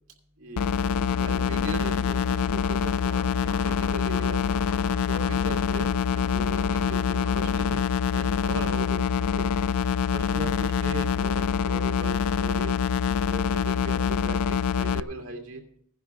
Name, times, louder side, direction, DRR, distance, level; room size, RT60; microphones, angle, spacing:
voice 1, 0.4-0.7 1.2-4.4 4.7-5.9 6.1-7.8 8.1-9.5 10.1-12.8 13.3-15.6, right 1 dB, 65° right, 1 dB, 2.2 m, -38 dB
sound 1, 0.6-15.0, left 7 dB, 85° left, 0.4 m, -25 dB
sound 2, 0.6-7.9, left 2 dB, 65° left, 1.4 m, -44 dB
16.0 x 10.5 x 3.6 m, 0.65 s
head